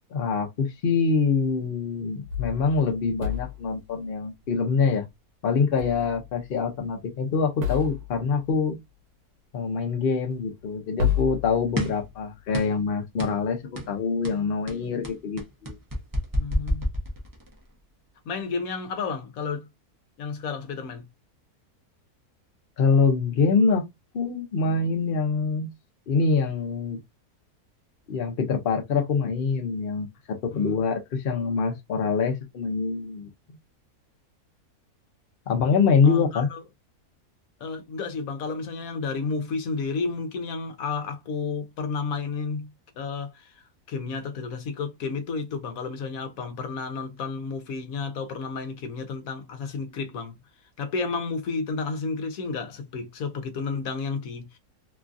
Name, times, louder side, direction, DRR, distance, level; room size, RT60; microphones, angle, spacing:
voice 1, 0.1-5.1 5.4-8.8 9.5-15.7 22.8-23.8 24.1-25.7 26.1-27.0 28.1-33.6 35.5-36.5, left 5 dB, 50° left, 0.7 m, -25 dB
sound 1, 2.2-3.8 5.8-6.5 6.7-6.8 7.6-8.4 10.3-10.4 11.0-12.2, left 8 dB, 80° right, 1.2 m, -31 dB
sound 2, 11.8-12.1 12.5-12.9 13.2-13.4 13.8-14.0 14.2-17.6, equal, 25° right, 0.4 m, -29 dB
voice 2, 16.4-16.9 18.3-19.7 20.2-21.1 30.5-30.8 36.0-36.6 37.6-42.7 43.0-50.3 50.8-54.6, left 4 dB, 70° left, 1.1 m, -31 dB
3.0 x 2.3 x 2.5 m
omnidirectional pair, 1.6 m